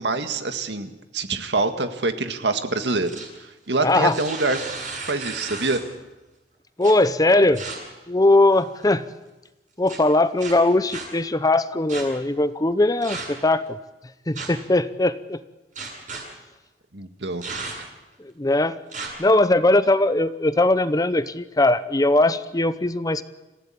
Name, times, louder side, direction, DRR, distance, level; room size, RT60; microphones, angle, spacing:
voice 1, 0.0-4.6 5.1-5.8 16.9-17.4 17.8-17.9, right 3 dB, 80° right, 8 dB, 1.8 m, -26 dB
sound 1, 2.8-3.4 3.9-5.9 6.8-6.9 7.5-7.8 8.4-8.8 9.9-10.0 10.4-11.0 11.9-12.0 13.0-13.4 14.3-14.7 15.8-16.2 17.4-18.0 18.9-19.1, right 4 dB, 45° right, 8.0 m, -34 dB
voice 2, 3.8-4.2 6.8-7.6 8.1-9.0 9.8-13.8 14.3-15.4 18.2-18.8 19.2-23.2, left 2 dB, 20° left, 14 dB, 0.8 m, -20 dB
27.0 x 16.0 x 8.6 m, 1.1 s
head